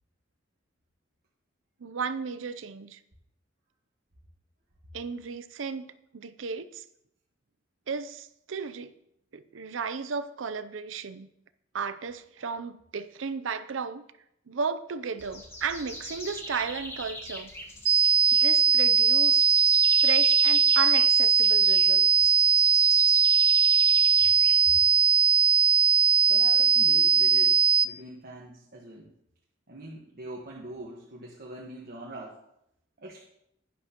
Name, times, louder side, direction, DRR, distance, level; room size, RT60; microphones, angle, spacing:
voice 1, 1.8-3.0 4.9-5.8 6.1-6.8 7.9-8.9 9.3-11.3 11.7-14.0 14.5-17.5 18.3-19.5 19.9-22.3, right 5 dB, 75° right, 13 dB, 0.6 m, -34 dB
sound 1, 15.2-25.0, left 1 dB, 15° left, 1.3 m, -40 dB
sound 2, 17.9-27.9, right 5 dB, 30° right, 0.3 m, -20 dB
voice 2, 26.3-29.1 29.7-32.4 33.0-33.3, right 1 dB, 50° right, -2 dB, 1.4 m, -43 dB
11.0 x 10.5 x 3.0 m, 0.77 s
head